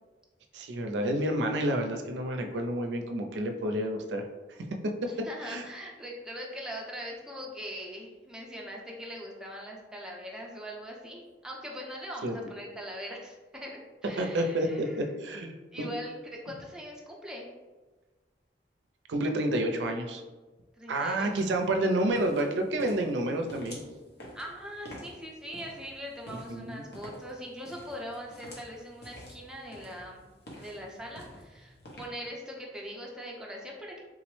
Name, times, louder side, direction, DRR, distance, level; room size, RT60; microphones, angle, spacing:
voice 1, 0.5-4.2 4.8-5.1 5.5-5.6 12.2-12.3 14.2-15.5 15.8-15.9 19.1-20.2 20.9-23.8 26.5-26.8, right 1 dB, 85° right, 4 dB, 0.4 m, -29 dB
voice 2, 5.1-15.1 15.4-16.1 16.4-17.5 20.8-21.6 24.3-30.2 30.5-34.0, equal, 5° right, -2 dB, 0.5 m, -41 dB
sound 1, 21.2-32.1, equal, 65° left, 0.7 m, -49 dB
3.6 x 2.0 x 3.0 m, 1.2 s
head